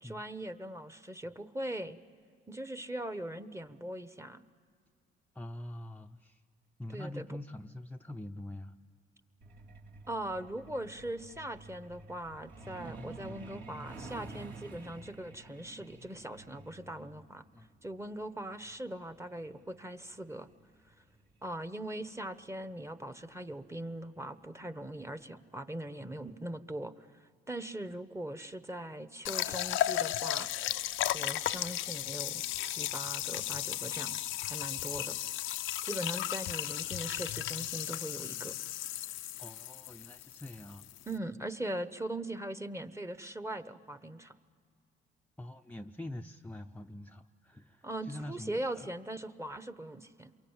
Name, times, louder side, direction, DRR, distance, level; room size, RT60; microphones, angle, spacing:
voice 1, 0.0-2.0 2.5-4.4 6.9-7.4 10.1-17.4 17.8-20.5 20.9-21.0 21.4-30.5 31.1-35.2 35.8-38.5 41.1-44.4 47.8-50.3, right 1 dB, 15° right, 11 dB, 1.1 m, -40 dB
voice 2, 5.3-6.4 6.8-8.8 17.5-17.7 39.4-40.8 45.4-48.9, left 1 dB, 10° left, 3 dB, 0.6 m, -44 dB
Truck, 9.4-21.7 22.9-23.1 23.5-23.7 24.0-24.3 24.7-24.8 25.2-25.3, right 2 dB, 70° right, 3.1 m, -50 dB
sound 1, 29.3-41.2, left 13 dB, 80° left, 0.6 m, -35 dB
27.5 x 23.5 x 8.9 m, 2.2 s
cardioid pair, 90°, 20 cm